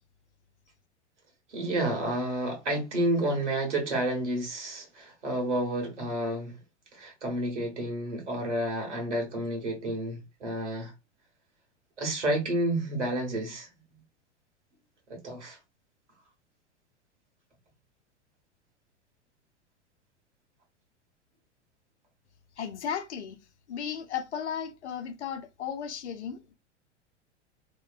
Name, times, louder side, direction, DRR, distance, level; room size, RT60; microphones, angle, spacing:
voice 1, 1.5-6.5 6.9-10.9 12.0-13.7 15.1-15.6, right 1 dB, 75° right, 1.3 m, -30 dB
voice 2, 22.6-23.4 23.7-26.5, left 8 dB, 70° left, 0.6 m, -35 dB
2.9 x 2.2 x 2.3 m
figure-of-eight pair, 95°, 36 cm